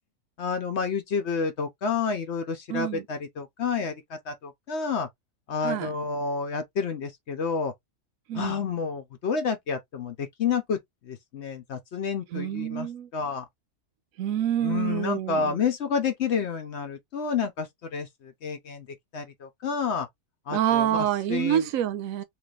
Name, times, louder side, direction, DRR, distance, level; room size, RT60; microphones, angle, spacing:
voice 1, 0.4-5.1 5.5-7.7 8.3-13.5 14.6-18.9 19.1-20.1 20.5-21.7, left 5 dB, 60° left, 0.9 m, -30 dB
voice 2, 2.7-3.0 5.6-5.9 8.3-8.5 12.3-13.1 14.2-15.6 20.5-22.2, right 11 dB, 70° right, 1.0 m, -27 dB
3.1 x 2.5 x 3.2 m
omnidirectional pair, 1.5 m